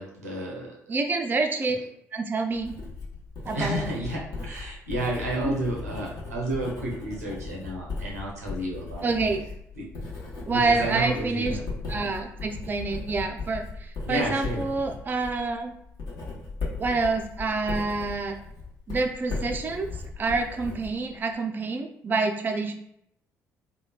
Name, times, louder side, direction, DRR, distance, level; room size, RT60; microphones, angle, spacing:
voice 1, 0.0-1.0 3.5-9.2 9.8-9.9 10.5-11.6 14.1-14.7, right 1 dB, 90° right, -2 dB, 0.5 m, -31 dB
voice 2, 0.9-1.8 2.1-2.7 3.4-3.9 5.4-5.6 9.0-9.5 10.4-11.6 11.9-15.7 16.8-18.4 18.9-19.9 20.2-22.7, right 3 dB, 25° right, 4 dB, 0.3 m, -27 dB
Writing, 2.5-21.3, left 3 dB, 55° left, 0.9 m, -37 dB
3.0 x 2.2 x 2.3 m, 0.74 s
figure-of-eight pair, 50°, 8 cm